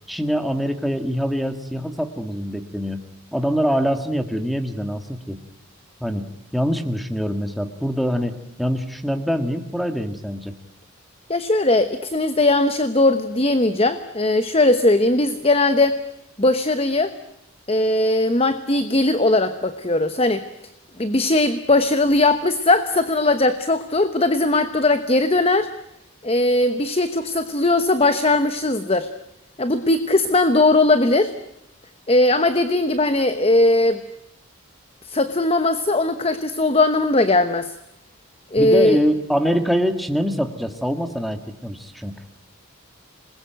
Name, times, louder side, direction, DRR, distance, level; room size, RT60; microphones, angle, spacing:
voice 1, 0.1-3.0 3.3-5.4 6.0-10.5 38.6-42.2, equal, ahead, 6 dB, 1.8 m, -24 dB
voice 2, 11.3-16.0 16.4-17.1 17.7-20.4 21.0-25.7 26.2-29.1 29.6-31.3 32.1-34.0 35.1-37.7 38.5-39.0, left 2 dB, 25° left, 10 dB, 1.0 m, -19 dB
27.0 x 21.0 x 9.2 m, 0.80 s
head